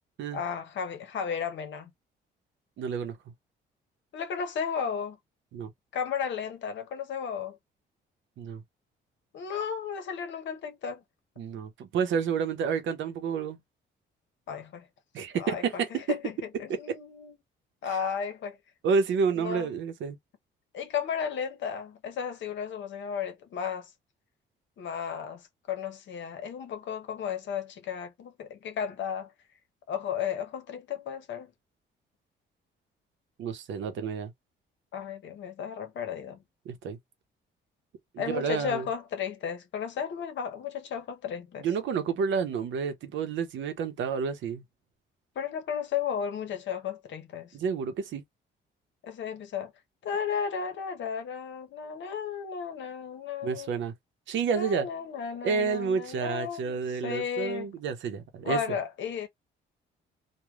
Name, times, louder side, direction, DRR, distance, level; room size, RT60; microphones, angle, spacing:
voice 1, 0.3-1.9 4.1-5.2 5.9-7.6 9.3-11.0 14.5-14.9 15.3-15.6 15.9-17.3 17.8-18.6 19.4-19.7 20.7-23.9 24.8-29.3 29.9-31.5 34.9-36.4 38.2-41.6 45.3-47.6 49.0-49.7 50.0-53.7 54.5-57.7 58.4-59.3, left 7 dB, 70° left, 0.9 m, -34 dB
voice 2, 2.8-3.2 5.5-5.7 8.4-8.6 11.4-13.6 15.1-16.2 16.7-16.8 18.8-20.2 33.4-34.3 36.7-37.0 38.1-38.9 41.6-44.6 47.5-48.2 53.4-53.9 54.3-54.9 55.4-58.6, right 6 dB, 75° right, 0.7 m, -29 dB
3.1 x 2.2 x 2.3 m
cardioid pair, 90°, 20 cm